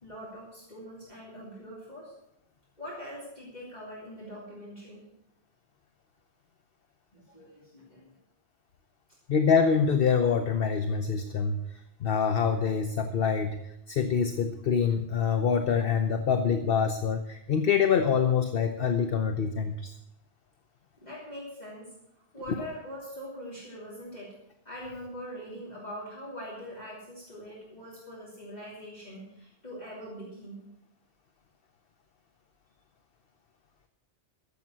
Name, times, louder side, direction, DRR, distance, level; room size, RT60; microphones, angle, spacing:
voice 1, 0.0-2.1 2.8-5.0 7.1-8.1 21.0-22.0 22.3-24.4 24.6-30.6, equal, 40° left, -6 dB, 3.2 m, -43 dB
voice 2, 9.3-13.6 13.9-19.9, left 6 dB, 60° left, 7 dB, 1.0 m, -25 dB
13.5 x 7.7 x 7.6 m, 0.81 s
omnidirectional pair, 1.1 m